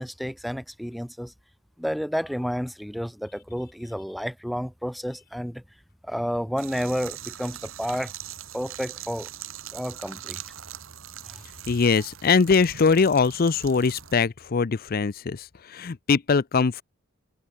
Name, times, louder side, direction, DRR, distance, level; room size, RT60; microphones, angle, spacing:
voice 1, 0.0-1.3 1.8-5.6 6.0-8.1 8.5-9.3 9.7-10.4 11.3-11.4, equal, ahead, 2.2 m, -31 dB
sound 1, 6.6-14.1, right 11 dB, 70° right, 2.0 m, -41 dB
voice 2, 11.7-16.8, left 5 dB, 45° left, 0.5 m, -22 dB
head